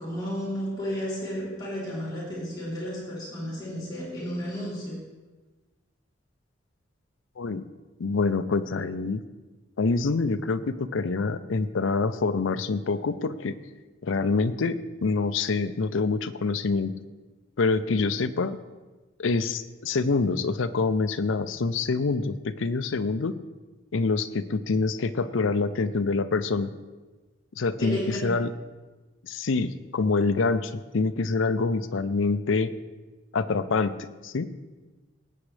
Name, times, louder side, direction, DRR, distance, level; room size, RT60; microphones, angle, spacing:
voice 1, 0.0-5.0 27.8-28.2, equal, 20° left, -8 dB, 3.4 m, -32 dB
voice 2, 7.4-7.7 8.0-9.2 9.8-13.6 14.0-16.9 17.6-18.6 19.2-23.3 23.9-26.7 27.6-28.5 29.2-32.7 33.3-33.9 34.2-34.5, left 4 dB, 75° left, 10 dB, 0.5 m, -26 dB
19.0 x 8.5 x 3.3 m, 1.2 s
head